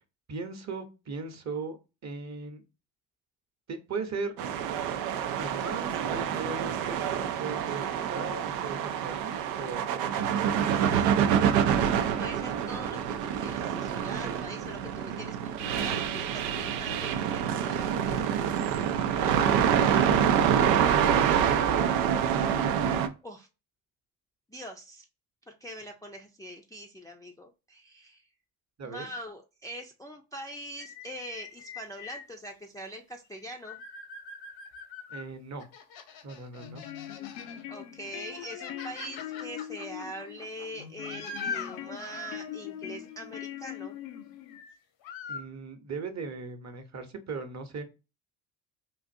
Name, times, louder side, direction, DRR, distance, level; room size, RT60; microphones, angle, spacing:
voice 1, 0.3-1.8 2.0-2.6 3.7-4.3 5.4-10.8 14.2-14.3 19.1-19.5 20.0-21.5 28.8-29.1 35.1-35.6 36.2-36.8 45.3-47.8, right 4 dB, 35° right, 8 dB, 0.9 m, -38 dB
sound 1, 4.4-23.1, right 8 dB, 85° right, 0.6 m, -27 dB
voice 2, 10.9-11.3 12.2-13.1 13.4-18.3 23.2-23.5 24.5-25.1 25.5-28.2 28.8-33.8 37.7-44.0, right 1 dB, 5° left, 1 dB, 0.5 m, -43 dB
sound 2, 30.8-32.3 33.3-35.3 35.6-37.6 38.1-42.4 44.4-44.8 45.0-45.4, left 5 dB, 65° left, 0.9 m, -42 dB
sound 3, 36.6-44.6, left 11 dB, 85° left, 0.6 m, -42 dB
3.9 x 2.5 x 2.5 m, 0.29 s
hypercardioid pair, 60°, 49 cm